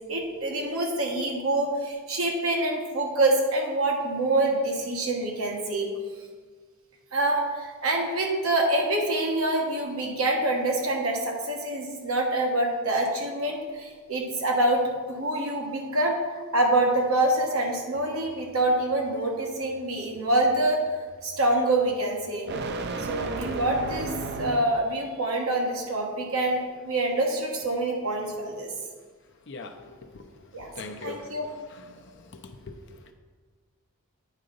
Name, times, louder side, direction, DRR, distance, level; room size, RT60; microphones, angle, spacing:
voice 1, 0.1-5.9 7.1-14.8 15.1-16.2 16.5-20.8 21.2-22.5 23.0-24.1 24.4-28.7 30.5-30.7 31.0-31.5, right 2 dB, 70° right, 1 dB, 1.2 m, -26 dB
sound 1, 18.0-24.9, right 3 dB, 50° right, 0.4 m, -36 dB
voice 2, 29.5-30.2 30.8-31.3 32.3-32.8, left 3 dB, 55° left, 5 dB, 0.6 m, -40 dB
9.0 x 3.8 x 5.3 m, 1.5 s
head